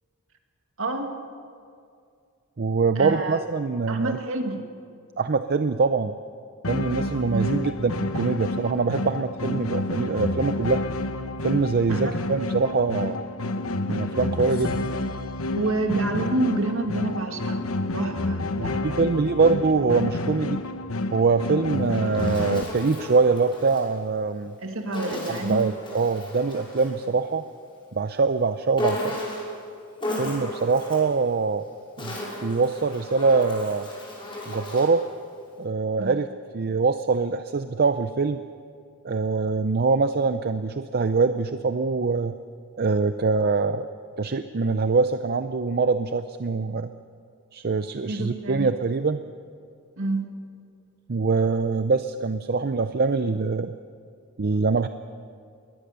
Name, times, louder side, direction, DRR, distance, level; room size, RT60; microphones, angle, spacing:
voice 1, 0.8-1.1 3.0-3.4 3.9-4.6 7.3-7.6 11.9-12.2 15.6-19.1 24.6-25.7 36.0-36.2 48.1-48.8 50.0-50.3, right 2 dB, 70° right, 4 dB, 2.3 m, -28 dB
voice 2, 2.6-4.2 5.2-6.1 6.7-10.8 11.4-13.2 13.9-14.9 18.6-20.6 21.1-24.5 25.3-27.4 27.9-29.2 30.2-31.6 32.0-33.9 34.5-35.0 35.6-36.3 36.5-38.4 39.0-42.3 42.8-43.9 44.2-46.9 47.5-49.2 51.1-53.7 54.4-54.9, right 4 dB, 50° right, 10 dB, 0.6 m, -24 dB
sound 1, 6.6-22.6, left 2 dB, 75° left, 1.0 m, -29 dB
Insect, 21.7-23.9 24.9-27.0 28.8-29.6 30.0-31.1 31.8-35.0, left 1 dB, 25° left, 5.9 m, -34 dB
22.5 x 19.0 x 6.8 m, 2.3 s
head